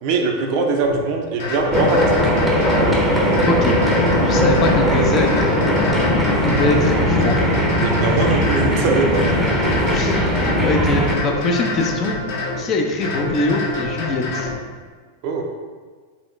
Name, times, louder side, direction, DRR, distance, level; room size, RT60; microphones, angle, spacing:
voice 1, 0.0-2.3 7.8-9.2 15.2-15.4, right 4 dB, 45° right, 2 dB, 0.5 m, -21 dB
sound 1, 0.8-1.0 1.4-2.9 3.3-4.9 5.3-6.8 7.2-8.7 9.1-10.7 11.1-12.6 13.0-14.5, left 3 dB, 55° left, 1.3 m, -27 dB
sound 2, 1.7-11.2, equal, 5° right, 0.7 m, -18 dB
voice 2, 3.4-3.8 4.2-5.7 6.4-7.4 9.9-12.2 12.6-14.5, left 2 dB, 30° left, 2 dB, 0.5 m, -22 dB
4.1 x 3.8 x 3.1 m, 1.5 s
figure-of-eight pair, 90°, 0 cm